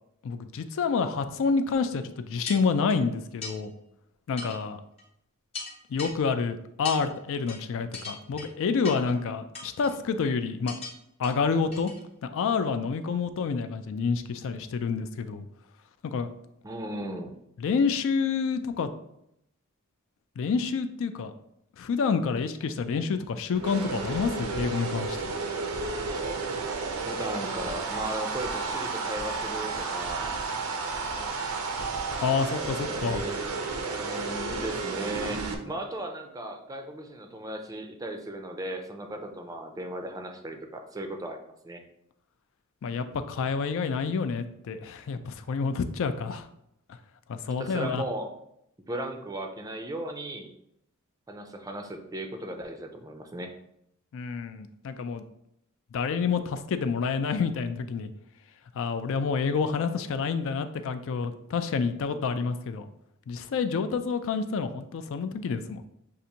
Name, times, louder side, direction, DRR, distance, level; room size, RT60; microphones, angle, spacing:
voice 1, 0.2-3.7 4.3-4.8 5.9-10.7 11.2-11.9 12.3-15.5 16.0-16.3 17.6-18.9 20.4-21.3 21.8-25.3 32.2-33.2 42.8-46.4 47.3-48.0 54.1-55.2 55.9-58.1 58.7-62.8 63.3-65.9, left 5 dB, 65° left, 9 dB, 0.4 m, -28 dB
sound 1, 1.7-1.8 2.5-3.0 3.4-3.6 4.4-4.6 5.0-5.1 5.5-6.1 6.8-7.0 7.5-7.6 7.9-8.5 8.8-9.1 9.5-10.0 10.7-10.9 11.2-11.3 11.7-12.0 12.4-12.5, left 3 dB, 30° left, 1.0 m, -38 dB
voice 2, 16.6-17.4 27.0-30.3 32.9-33.4 34.0-41.8 47.6-48.3 48.9-50.5 51.3-53.5, right 1 dB, 15° right, 5 dB, 0.4 m, -36 dB
sound 2, 23.5-35.5, right 4 dB, 80° right, 0.6 m, -32 dB
6.5 x 2.5 x 2.8 m, 0.77 s
head